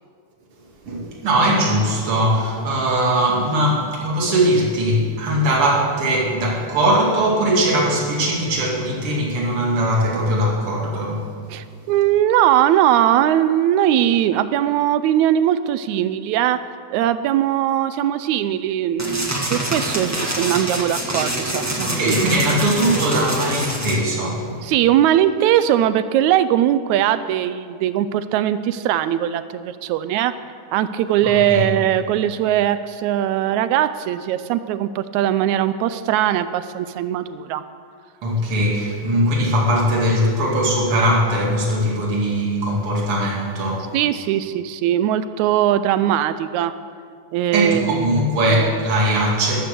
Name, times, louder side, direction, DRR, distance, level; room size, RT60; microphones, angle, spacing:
voice 1, 0.9-11.3 21.8-24.7 31.2-31.6 38.2-44.0 47.5-49.7, right 1 dB, 45° right, -2 dB, 3.2 m, -20 dB
voice 2, 11.5-16.6 16.9-22.2 24.6-30.3 30.7-37.6 43.9-46.7 47.3-48.1, right 11 dB, 80° right, 13 dB, 1.8 m, -20 dB
sound 1, 19.0-24.0, right 1 dB, 15° right, 0.5 m, -25 dB
13.5 x 12.0 x 6.7 m, 2.2 s
omnidirectional pair, 3.5 m